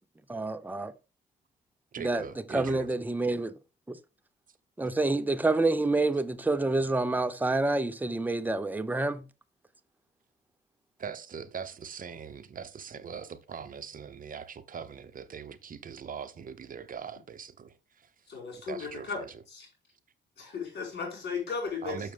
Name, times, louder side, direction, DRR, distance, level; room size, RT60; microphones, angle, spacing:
voice 1, 0.3-0.9 2.0-2.2 2.5-3.5 3.9-4.0 4.8-9.2, right 2 dB, 10° right, 0.6 m, -28 dB
voice 2, 1.9-2.9 11.0-18.1 18.7-19.4 21.8-22.1, right 7 dB, 45° right, 0.9 m, -41 dB
voice 3, 18.3-19.2 19.5-19.7 20.4-22.1, left 5 dB, 60° left, 4.9 m, -36 dB
6.4 x 6.3 x 3.5 m
cardioid pair, 90°, 20 cm